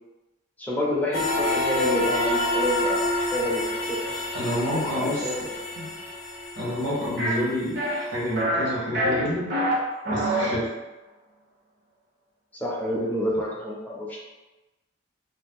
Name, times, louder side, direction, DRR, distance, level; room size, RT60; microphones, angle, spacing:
voice 1, 0.6-4.1 4.7-5.4 10.4-10.5 12.6-14.2, left 1 dB, 10° left, -6 dB, 0.6 m, -28 dB
sound 1, 1.1-7.4, left 1 dB, 85° left, 0.5 m, -28 dB
voice 2, 4.3-5.3 5.7-5.8 6.6-9.5 10.1-10.7, equal, 70° right, -7 dB, 1.2 m, -28 dB
sound 2, 7.2-7.3 7.8-8.0 8.4-8.7 8.9-9.7 10.0-10.5, right 1 dB, 50° right, 0.8 m, -25 dB
2.7 x 2.2 x 3.5 m, 1.1 s
head